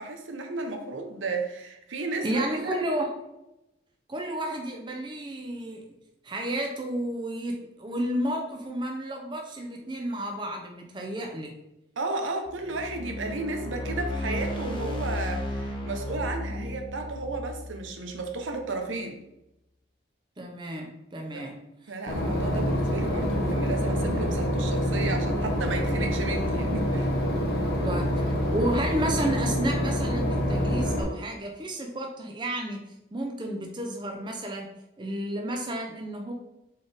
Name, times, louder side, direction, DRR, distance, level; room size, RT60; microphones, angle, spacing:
voice 1, 0.0-2.8 12.0-19.2 21.3-21.5 21.9-27.1, right 3 dB, 85° right, 4 dB, 0.7 m, -33 dB
voice 2, 2.2-3.1 4.1-5.9 6.2-11.6 20.4-22.0 27.6-32.8 33.1-34.7 35.0-36.3, right 1 dB, 25° right, 2 dB, 0.5 m, -32 dB
sound 1, 12.5-18.7, left 1 dB, 25° left, 0.6 m, -34 dB
Boat Water vehicle / Engine, 22.1-31.0, equal, 55° left, 0.9 m, -26 dB
4.1 x 3.7 x 3.4 m, 0.91 s
head